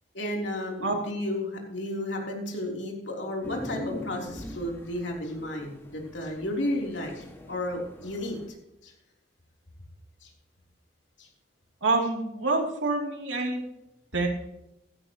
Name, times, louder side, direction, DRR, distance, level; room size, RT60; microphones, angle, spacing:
voice 1, 0.1-8.4 8.8-8.9 10.2-10.3 11.2-11.3, left 1 dB, 70° left, 0 dB, 3.5 m, -33 dB
sound 1, 3.4-8.5, left 1 dB, 15° left, 1.9 m, -42 dB
voice 2, 11.8-13.6 14.1-14.3, right 3 dB, 85° right, 1 dB, 3.1 m, -26 dB
15.5 x 13.0 x 3.1 m, 0.90 s
head